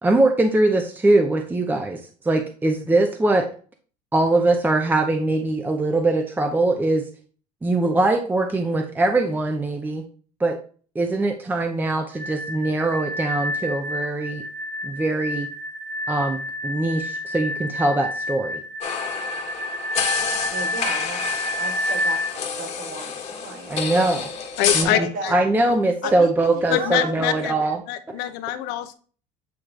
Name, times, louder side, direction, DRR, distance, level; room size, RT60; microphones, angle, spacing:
voice 1, 0.0-3.5 4.1-7.0 7.6-10.0 10.4-10.6 11.0-14.4 14.8-15.5 16.1-18.6 23.7-24.3 24.7-27.8, right 2 dB, 10° right, 5 dB, 0.6 m, -22 dB
sound 1, 12.1-22.3, left 1 dB, 85° right, 3.0 m, -29 dB
sound 2, 18.8-24.8, left 6 dB, 40° left, 1.5 m, -28 dB
voice 2, 20.5-23.9 24.6-25.4 26.0-27.3 27.7-27.8, right 3 dB, 50° right, 2 dB, 2.0 m, -35 dB
voice 3, 24.6-25.3 26.0-26.1 26.7-27.5 27.9-28.9, left 12 dB, 70° left, 10 dB, 0.8 m, -24 dB
8.3 x 3.1 x 3.7 m, 0.41 s
cardioid pair, 125°, 18 cm